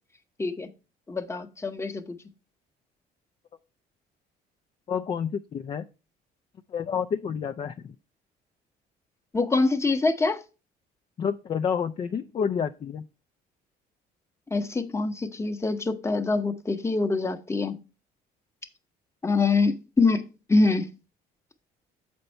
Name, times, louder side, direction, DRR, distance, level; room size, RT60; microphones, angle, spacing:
voice 1, 1.1-2.2 9.3-10.4 14.5-17.8 19.2-20.9, left 3 dB, 15° left, 0.8 m, -25 dB
voice 2, 4.9-5.9 6.7-8.0 11.2-13.0, left 7 dB, 35° left, 0.4 m, -29 dB
6.8 x 5.2 x 4.4 m
cardioid pair, 110°, 17 cm